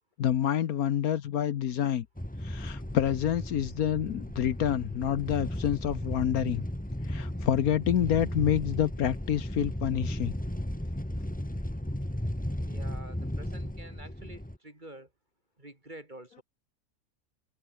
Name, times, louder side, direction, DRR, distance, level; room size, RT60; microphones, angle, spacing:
voice 1, 0.2-2.1 2.4-6.6 7.1-10.3, left 10 dB, 70° left, 1.3 m, -28 dB
sound 1, 2.2-14.6, left 1 dB, 5° left, 2.0 m, -35 dB
voice 2, 12.6-15.1 15.6-16.4, right 1 dB, 30° right, 4.4 m, -48 dB
omnidirectional pair, 1.7 m